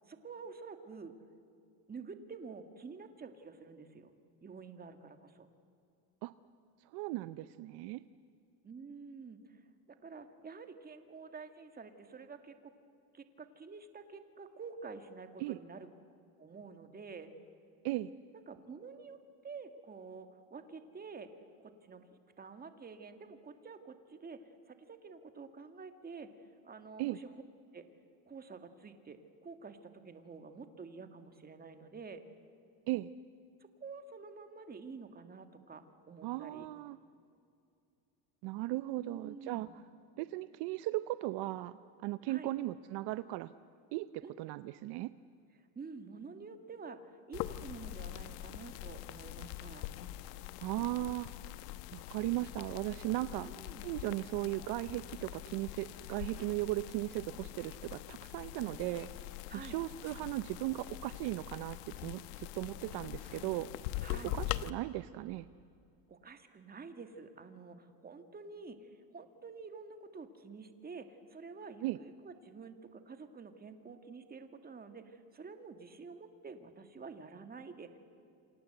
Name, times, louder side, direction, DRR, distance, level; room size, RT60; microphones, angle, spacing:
voice 1, 0.1-1.1 1.9-4.1 4.4-5.5 8.6-12.7 13.1-15.9 16.4-17.3 18.3-19.2 19.4-21.3 21.6-26.3 26.6-27.3 27.7-27.9 28.3-32.2 33.6-36.7 39.0-39.8 42.3-42.5 44.2-44.3 45.6-49.9 53.5-53.8 59.5-59.8 64.0-64.4 66.1-78.0, right 4 dB, 20° right, 8 dB, 1.9 m, -49 dB
voice 2, 6.9-8.0 15.4-15.6 17.8-18.1 27.0-27.2 32.9-33.1 36.2-37.0 38.4-39.7 40.2-41.8 42.0-43.5 43.9-45.1 50.6-51.3 51.9-53.5 53.8-59.1 59.5-61.8 62.0-63.7 64.3-65.5 71.8-72.0, right 17 dB, 55° right, 14 dB, 0.7 m, -37 dB
sound 1, 47.3-64.7, left 16 dB, 80° left, 1.2 m, -43 dB
28.0 x 27.0 x 8.0 m, 2.5 s
cardioid pair, 135°, 47 cm